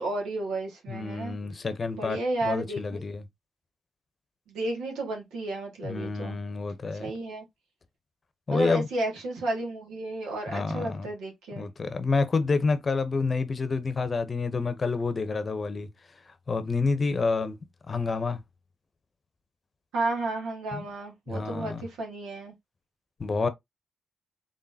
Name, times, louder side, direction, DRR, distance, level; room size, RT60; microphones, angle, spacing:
voice 1, 0.0-1.4 2.0-3.0 4.5-6.4 7.0-7.5 8.5-11.7 19.9-22.5, right 2 dB, 90° right, 1.8 m, -32 dB
voice 2, 0.9-3.2 5.8-7.1 8.5-8.9 10.5-11.1 11.6-15.9 16.5-17.6 17.9-18.4 20.7-20.8 21.3-21.9 23.2-23.5, left 4 dB, 45° left, 0.8 m, -28 dB
3.8 x 3.7 x 2.7 m
supercardioid pair, 60°, 0 cm